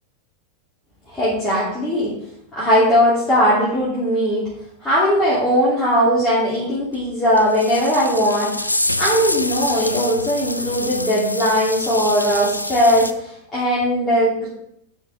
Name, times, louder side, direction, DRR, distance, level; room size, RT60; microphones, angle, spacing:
voice 1, 1.1-2.1 2.5-4.5 4.8-14.5, equal, 15° left, -10 dB, 3.0 m, -19 dB
sound 1, 6.9-7.0 7.4-13.1, left 1 dB, 85° left, 0.3 m, -26 dB
9.3 x 6.1 x 3.6 m, 0.72 s
figure-of-eight pair, 90°, 0 cm